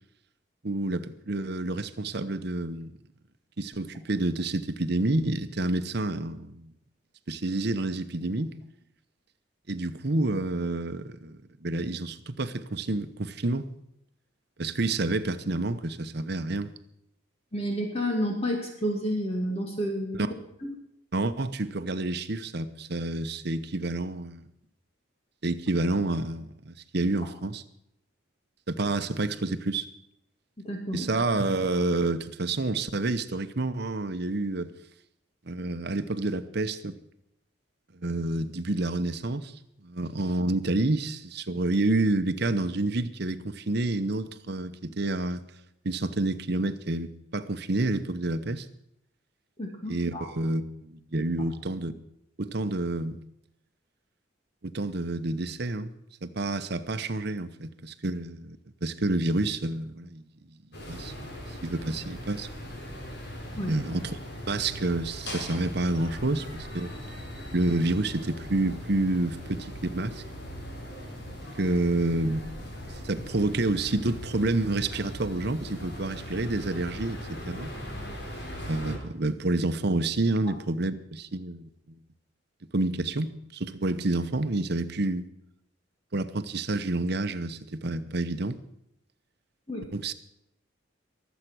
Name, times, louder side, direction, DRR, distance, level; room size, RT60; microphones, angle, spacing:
voice 1, 0.6-2.9 3.6-6.7 7.3-8.5 9.7-13.7 14.6-16.7 20.2-20.3 21.1-24.5 25.4-27.6 28.7-29.9 30.9-34.7 35.5-37.0 38.0-39.5 39.8-45.4 45.8-48.7 49.9-51.9 52.4-53.2 54.6-55.9 56.2-60.2 60.9-61.3 61.6-62.5 63.5-64.2 64.5-66.9 67.5-70.2 71.6-72.5 72.9-77.7 78.6-82.0 82.7-85.3 86.1-88.6 89.9-90.1, right 2 dB, 55° right, 0.9 m, -29 dB
voice 2, 17.5-20.2 20.6-20.7 30.6-31.1 49.6-50.3 63.5-63.7 89.7-89.9, equal, 30° left, 2.2 m, -30 dB
sound 1, 60.7-79.0, equal, 55° left, 3.8 m, -39 dB
22.0 x 8.2 x 6.2 m
head